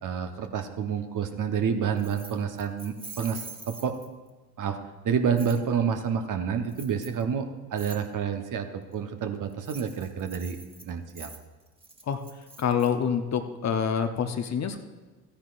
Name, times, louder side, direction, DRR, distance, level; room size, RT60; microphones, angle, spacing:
voice 1, 0.0-3.9 4.6-4.8 5.0-11.3, right 7 dB, 40° right, 6 dB, 1.1 m, -29 dB
Keys jangling, 2.0-4.3 5.4-5.6 6.7-7.2 7.8-8.0 9.5-12.9, right 3 dB, 10° right, 1.7 m, -45 dB
voice 2, 12.6-14.8, left 7 dB, 35° left, 7 dB, 0.9 m, -26 dB
15.0 x 10.0 x 2.6 m, 1.3 s
figure-of-eight pair, 60°, 47 cm